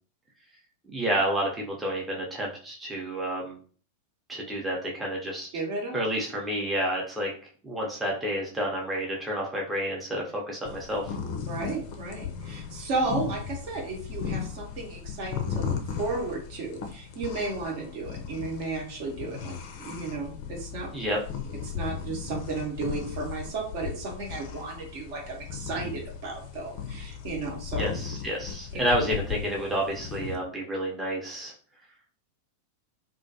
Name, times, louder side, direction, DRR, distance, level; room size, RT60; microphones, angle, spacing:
voice 1, 0.9-3.6 4.3-5.5 5.9-7.3 7.6-11.1 20.9-21.2 27.8-31.5, equal, 10° right, -2 dB, 0.6 m, -30 dB
voice 2, 5.5-6.0 11.4-20.9 21.7-27.8 28.7-28.8, right 3 dB, 50° right, 0 dB, 0.8 m, -34 dB
sound 1, 10.6-30.3, left 7 dB, 45° left, 0.4 m, -36 dB
2.4 x 2.2 x 2.7 m, 0.43 s
figure-of-eight pair, 90°, 0 cm